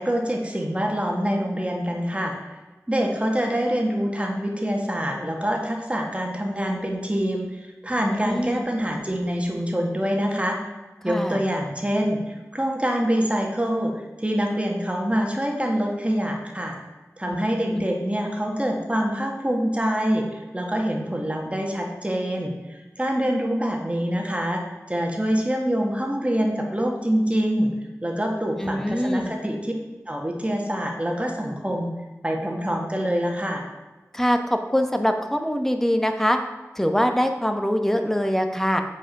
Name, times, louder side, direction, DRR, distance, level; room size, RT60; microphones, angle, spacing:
voice 1, 0.0-2.5 2.9-10.6 11.0-13.9 14.2-16.7 17.2-24.6 24.9-27.7 28.0-29.7 30.1-31.9 32.2-33.6, equal, 20° right, 1 dB, 1.8 m, -25 dB
voice 2, 8.0-8.7 11.0-11.4 17.3-17.4 17.7-17.8 28.6-29.3 34.1-36.4 36.8-38.8, equal, 5° left, 6 dB, 1.0 m, -23 dB
7.8 x 5.1 x 5.8 m, 1.2 s
wide cardioid pair, 45°, 6 cm